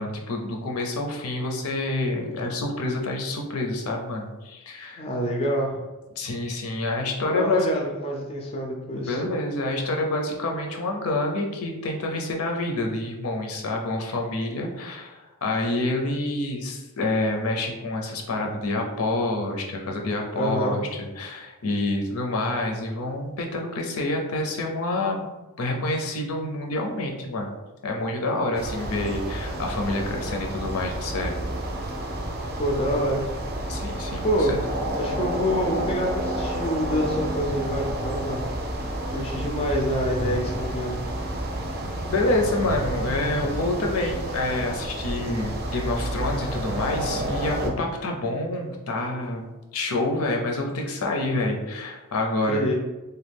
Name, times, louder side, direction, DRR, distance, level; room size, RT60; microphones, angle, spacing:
voice 1, 0.0-5.1 6.2-7.7 8.9-25.3 25.6-27.5 27.8-31.4 33.7-34.6 42.1-52.6, left 2 dB, 80° left, 1 dB, 0.5 m, -27 dB
voice 2, 5.0-5.8 7.3-9.2 20.3-20.7 32.6-33.3 34.2-34.5 35.0-38.5 39.1-41.0 52.5-52.7, equal, 25° left, 0 dB, 0.4 m, -26 dB
sound 1, 28.5-47.7, right 1 dB, 45° right, 0.4 m, -30 dB
3.0 x 2.2 x 3.4 m, 1.1 s
head